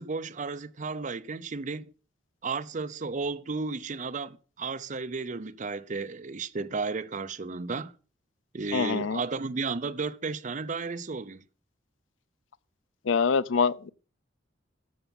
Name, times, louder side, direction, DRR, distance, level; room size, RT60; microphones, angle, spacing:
voice 1, 0.0-1.9 2.4-7.9 8.5-11.4, right 4 dB, 40° right, 0.6 m, -33 dB
voice 2, 8.7-9.2 13.1-13.9, left 5 dB, 85° left, 0.5 m, -25 dB
13.0 x 6.9 x 5.3 m
head